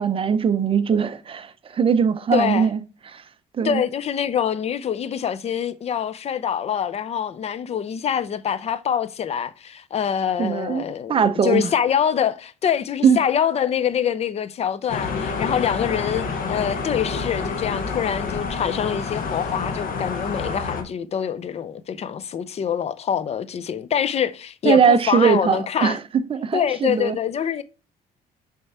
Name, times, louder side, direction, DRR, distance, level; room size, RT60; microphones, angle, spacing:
voice 1, 0.0-2.8 3.1-3.2 3.6-3.8 10.4-11.7 13.0-13.2 24.6-26.0 26.3-27.2, right 6 dB, 35° right, 0.6 m, -20 dB
voice 2, 2.3-2.7 3.6-26.0 26.5-27.6, left 8 dB, 40° left, 0.5 m, -25 dB
sound 1, 14.9-20.8, left 5 dB, 60° left, 1.2 m, -28 dB
6.5 x 3.5 x 4.2 m
cardioid pair, 110°, 17 cm